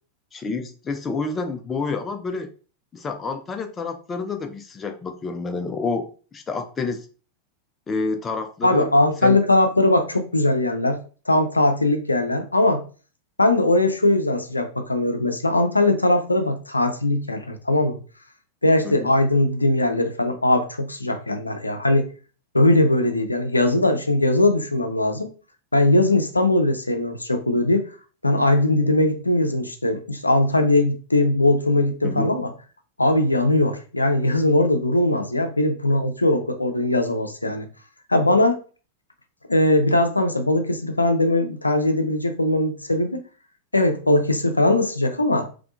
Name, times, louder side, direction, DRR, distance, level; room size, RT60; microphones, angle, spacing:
voice 1, 0.3-2.5 2.9-7.1 7.9-8.9 9.2-9.4 18.8-19.1 32.0-32.4, left 4 dB, 20° left, 6 dB, 0.4 m, -29 dB
voice 2, 8.6-11.0 11.3-12.8 13.4-18.0 18.6-22.0 22.5-25.3 25.7-27.8 28.2-32.5 33.0-37.7 38.1-38.6 39.5-43.2 43.7-45.5, left 1 dB, 80° left, 7 dB, 0.5 m, -20 dB
3.5 x 3.2 x 2.5 m, 0.37 s
figure-of-eight pair, 90°, 0 cm